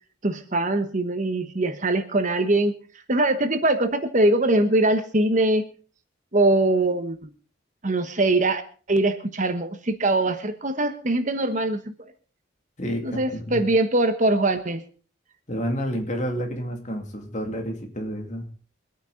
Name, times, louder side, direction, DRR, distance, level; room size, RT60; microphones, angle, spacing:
voice 1, 0.2-2.8 3.1-5.7 6.3-7.3 7.8-8.6 8.9-11.9 13.0-14.8, right 2 dB, 40° right, 9 dB, 1.3 m, -22 dB
voice 2, 12.8-13.7 15.5-18.5, equal, 40° left, 4 dB, 2.5 m, -30 dB
24.0 x 9.2 x 4.0 m, 0.38 s
head